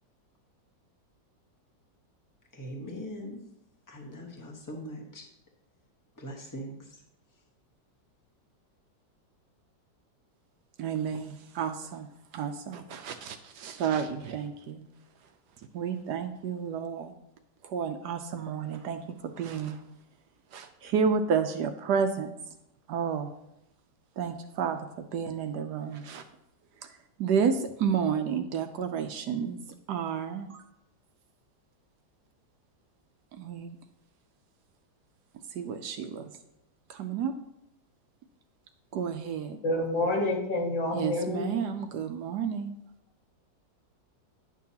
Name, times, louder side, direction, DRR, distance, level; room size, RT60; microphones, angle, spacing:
voice 1, 2.5-3.4 3.9-5.2 6.2-7.0, equal, 15° left, -1 dB, 0.9 m, -41 dB
voice 2, 10.8-12.1 12.3-14.9 15.7-17.1 17.6-19.8 20.5-22.3 22.9-23.3 24.2-26.2 26.8-29.6 29.9-30.7 33.3-33.8 35.5-36.3 36.9-37.3 38.9-39.6 40.9-42.8, right 6 dB, 75° right, 7 dB, 1.1 m, -31 dB
voice 3, 39.6-41.5, left 2 dB, 85° left, -1 dB, 2.3 m, -28 dB
10.0 x 6.1 x 2.8 m, 0.84 s
omnidirectional pair, 2.0 m